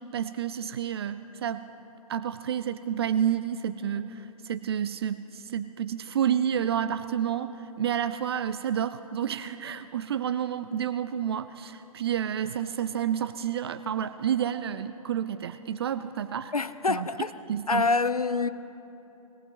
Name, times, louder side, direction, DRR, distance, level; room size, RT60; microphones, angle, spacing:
voice 1, 0.1-1.7 2.1-16.5 16.9-17.1 17.5-17.9, right 9 dB, 45° right, 0.4 m, -30 dB
voice 2, 16.5-17.3 17.7-18.5, left 4 dB, 90° left, 0.5 m, -26 dB
21.0 x 18.0 x 3.2 m
figure-of-eight pair, 120°, 19 cm